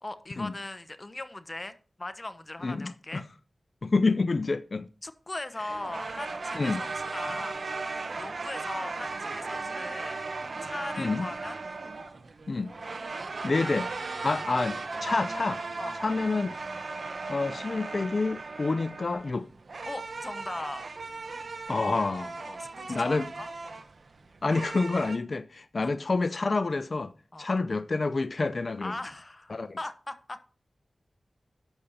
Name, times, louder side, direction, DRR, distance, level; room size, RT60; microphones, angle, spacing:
voice 1, 0.0-3.2 5.0-7.6 8.2-10.2 10.6-11.6 13.6-13.8 15.8-16.0 19.8-20.9 21.7-22.1 22.4-23.5 25.8-26.0 27.3-27.4 28.8-30.4, left 2 dB, 35° left, 1.1 m, -39 dB
voice 2, 2.6-3.2 3.8-4.9 6.5-6.8 11.0-11.3 12.5-12.7 13.4-13.9 14.2-15.6 16.0-16.6 17.3-19.5 21.7-22.3 22.9-23.3 24.4-27.1 27.4-28.9 29.5-29.8, left 3 dB, 60° left, 0.5 m, -28 dB
sound 1, 5.7-25.2, right 3 dB, 65° right, 1.0 m, -37 dB
10.5 x 7.0 x 4.2 m
cardioid pair, 40°, 0 cm